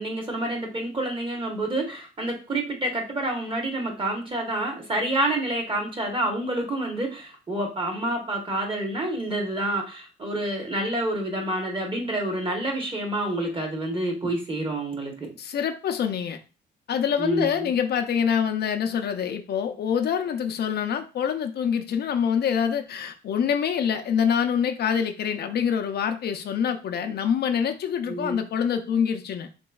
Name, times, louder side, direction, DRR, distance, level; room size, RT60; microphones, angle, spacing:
voice 1, 0.0-15.3 17.2-17.7 28.1-28.4, right 1 dB, 25° right, 1 dB, 1.1 m, -28 dB
voice 2, 15.4-16.4 16.9-29.5, left 7 dB, 55° left, 7 dB, 0.4 m, -25 dB
3.3 x 2.9 x 2.3 m, 0.34 s
cardioid pair, 90°, 20 cm